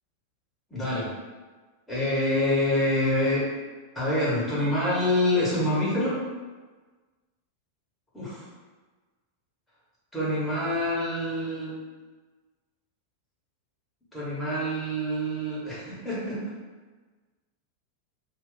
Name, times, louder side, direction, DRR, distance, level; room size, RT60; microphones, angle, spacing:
voice 1, 0.7-1.1 1.9-3.5 3.9-6.2 8.1-8.4 10.1-11.7 14.1-16.4, left 1 dB, 5° left, -9 dB, 1.3 m, -26 dB
2.6 x 2.4 x 4.0 m, 1.3 s
figure-of-eight pair, 90°, 0 cm